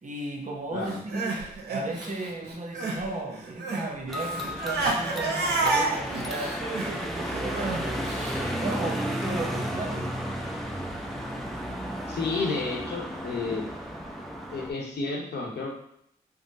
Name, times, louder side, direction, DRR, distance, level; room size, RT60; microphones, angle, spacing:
voice 1, 0.0-1.4 1.7-10.2, right 2 dB, 50° right, 2 dB, 0.8 m, -35 dB
Crying sobbing, 0.9-3.1 3.3-8.4, right 3 dB, 85° right, 0.7 m, -30 dB
sound 1, 4.1-14.7, equal, ahead, 0.7 m, -33 dB
voice 2, 12.1-13.6 14.5-15.7, left 3 dB, 80° left, -1 dB, 0.9 m, -31 dB
3.6 x 2.1 x 4.0 m, 0.71 s
supercardioid pair, 45°, 17 cm